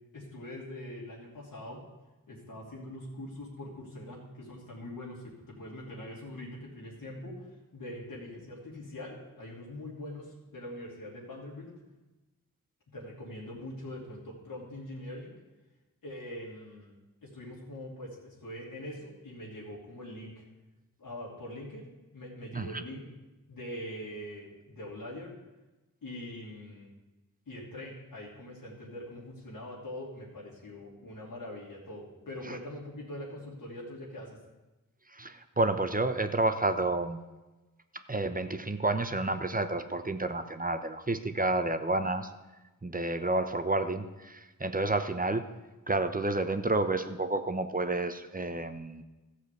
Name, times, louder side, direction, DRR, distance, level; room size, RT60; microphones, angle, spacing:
voice 1, 0.1-1.8 2.3-11.7 12.9-15.3 16.0-17.0 17.2-20.4 21.0-23.0 23.5-25.3 26.0-26.9 27.5-34.4, left 1 dB, 80° left, -5 dB, 2.6 m, -43 dB
voice 2, 35.1-37.2 38.1-42.3 42.8-45.4 45.9-49.0, right 2 dB, 25° right, 8 dB, 0.9 m, -30 dB
13.5 x 5.0 x 8.1 m, 1.1 s
cardioid pair, 40°, 34 cm